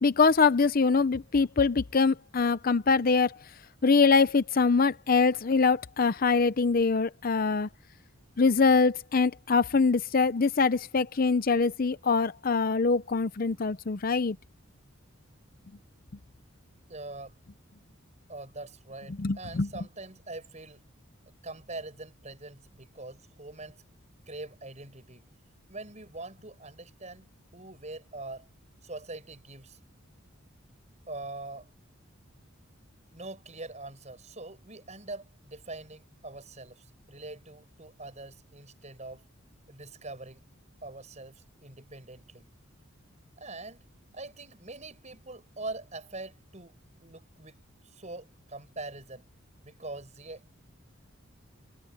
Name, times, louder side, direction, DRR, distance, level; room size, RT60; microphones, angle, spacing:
voice 1, 0.0-3.4 3.8-7.7 8.4-14.4 19.2-19.7, left 4 dB, 45° left, 0.6 m, -24 dB
voice 2, 16.9-17.3 18.3-20.9 21.4-23.8 24.3-25.2 25.7-28.5 28.8-29.8 31.1-31.7 33.1-39.2 39.7-40.4 40.8-42.5 43.4-43.8 44.1-47.6 47.9-49.3 49.6-50.5, right 2 dB, 35° right, 7.3 m, -43 dB
head